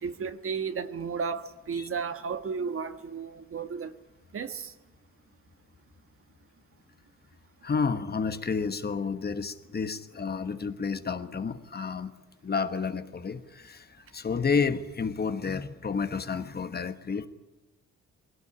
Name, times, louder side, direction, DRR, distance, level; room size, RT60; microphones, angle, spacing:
voice 1, 0.0-3.9 4.3-4.7, right 5 dB, 45° right, 1.4 m, -33 dB
voice 2, 7.6-12.1 12.4-17.3, left 5 dB, 30° left, 1.3 m, -30 dB
20.0 x 17.5 x 9.9 m
cardioid pair, 90°, 30 cm